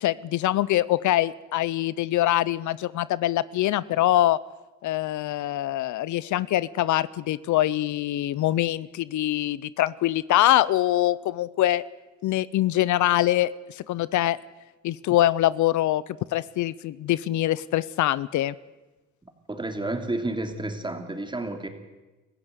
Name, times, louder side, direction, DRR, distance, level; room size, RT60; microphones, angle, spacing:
voice 1, 0.0-4.4 4.8-11.8 12.2-14.4 14.8-16.0 16.3-18.5, left 14 dB, 75° left, 19 dB, 0.7 m, -24 dB
voice 2, 19.5-21.7, right 2 dB, 15° right, 6 dB, 3.2 m, -30 dB
25.5 x 15.0 x 8.2 m, 1.1 s
cardioid pair, 90°, 30 cm